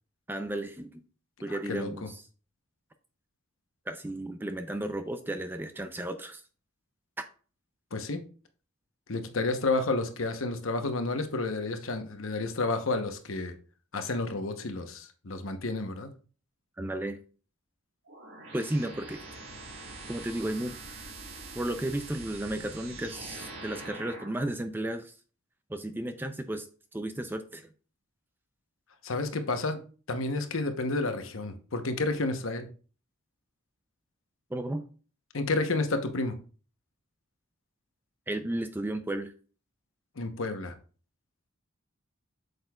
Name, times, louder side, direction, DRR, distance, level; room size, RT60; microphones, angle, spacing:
voice 1, 0.3-1.0 1.4-2.2 3.9-6.4 16.8-17.2 18.5-19.2 20.1-20.8 21.5-25.1 25.7-26.7 26.9-27.7 34.5-34.8 38.3-39.3, right 1 dB, 10° right, 0.4 m, -33 dB
voice 2, 7.9-8.2 9.1-13.5 13.9-16.1 29.0-29.8 30.1-32.7 35.3-36.4 40.2-40.7, left 3 dB, 70° left, 0.9 m, -30 dB
sound 1, 18.1-24.5, right 3 dB, 65° right, 1.6 m, -44 dB
7.9 x 6.6 x 2.3 m
head